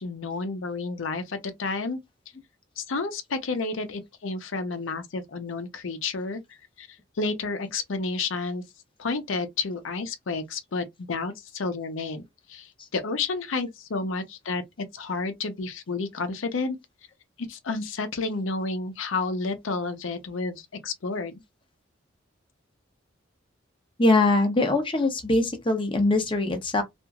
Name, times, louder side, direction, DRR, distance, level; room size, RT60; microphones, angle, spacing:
voice 1, 0.0-2.0 2.8-6.4 6.8-6.9 7.2-8.6 9.0-12.2 12.5-16.8 17.5-21.3, left 3 dB, 80° left, 0.6 m, -30 dB
voice 2, 24.0-26.8, left 2 dB, 25° left, 0.7 m, -22 dB
2.9 x 2.5 x 2.3 m
head